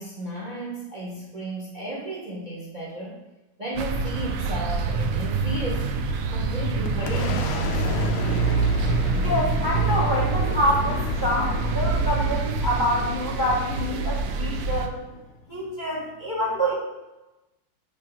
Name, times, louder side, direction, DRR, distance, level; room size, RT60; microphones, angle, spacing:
voice 1, 0.0-3.2 3.6-5.9 6.3-8.2, right 2 dB, 25° right, -3 dB, 0.9 m, -34 dB
sound 1, 3.8-14.9, right 4 dB, 90° right, 1.6 m, -26 dB
Boom, 6.2-15.6, left 8 dB, 80° left, 1.4 m, -36 dB
voice 2, 9.2-15.0 15.5-16.7, equal, 25° left, -5 dB, 1.2 m, -26 dB
8.7 x 3.0 x 5.4 m, 1.0 s
omnidirectional pair, 2.4 m